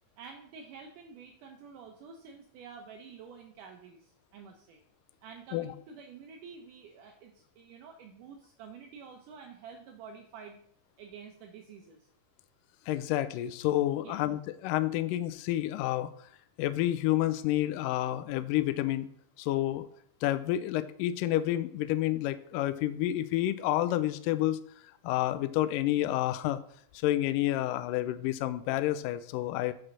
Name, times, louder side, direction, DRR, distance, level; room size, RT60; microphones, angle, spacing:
voice 1, 0.2-4.8 5.2-10.6 11.0-12.1 14.0-14.2, right 5 dB, 75° right, 3 dB, 2.1 m, -49 dB
voice 2, 12.9-16.1 16.6-19.1 19.4-19.9 20.2-24.6 25.0-26.6 26.9-29.7, left 14 dB, 80° left, 12 dB, 2.1 m, -29 dB
7.6 x 6.4 x 6.2 m, 0.64 s
omnidirectional pair, 4.2 m